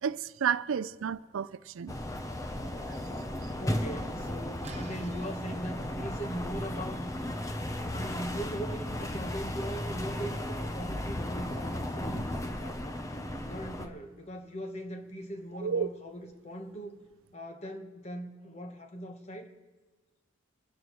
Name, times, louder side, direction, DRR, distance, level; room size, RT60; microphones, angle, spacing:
voice 1, 0.0-1.9 2.9-3.0 3.4-3.5 15.5-15.9, right 7 dB, 75° right, 0.4 m, -31 dB
sound 1, 1.9-13.9, left 1 dB, 15° left, 0.7 m, -35 dB
voice 2, 3.6-7.1 7.9-12.3 12.6-13.0 13.4-17.0 17.3-19.5, equal, 30° left, 1.2 m, -40 dB
sound 2, 4.6-10.3, right 2 dB, 30° right, 0.8 m, -52 dB
25.0 x 13.5 x 3.1 m
head